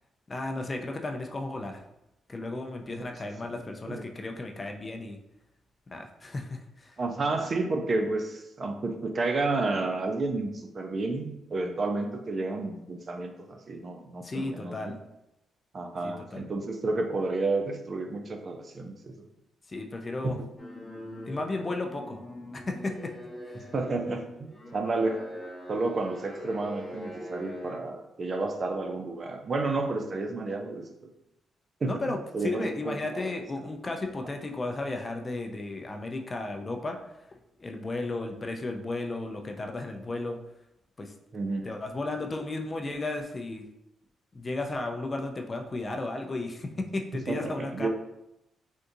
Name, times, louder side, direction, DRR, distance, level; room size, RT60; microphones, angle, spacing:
voice 1, 0.3-1.8 2.3-5.2 5.9-7.0 14.2-15.0 16.0-16.4 19.7-20.4 21.2-22.2 22.7-23.1 23.5-23.7 31.9-37.0 37.6-40.4 41.0-41.1 41.6-43.6 44.3-47.9, left 2 dB, 30° left, 4 dB, 0.4 m, -34 dB
voice 2, 7.0-14.9 15.7-19.3 20.2-20.3 23.7-25.2 25.7-30.8 31.8-32.0 32.3-33.3 41.3-41.7 47.3-47.9, right 3 dB, 45° right, 4 dB, 0.5 m, -31 dB
sound 1, 20.6-27.8, equal, 15° left, 0.8 m, -42 dB
3.5 x 2.5 x 2.6 m, 0.87 s
cardioid pair, 70°, 0 cm